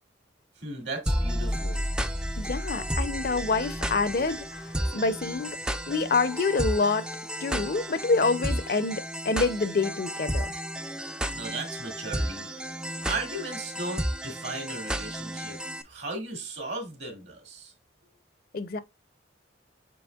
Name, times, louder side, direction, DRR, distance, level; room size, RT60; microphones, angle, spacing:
voice 1, 0.6-1.8 11.3-12.5 13.0-15.6 15.8-17.7, right 2 dB, 70° right, 2.2 m, -36 dB
sound 1, 1.1-15.8, equal, 5° right, 0.3 m, -32 dB
voice 2, 2.4-5.6 5.9-7.1 7.4-10.5 18.5-18.8, left 4 dB, 50° left, 0.5 m, -27 dB
6.9 x 3.1 x 2.3 m
head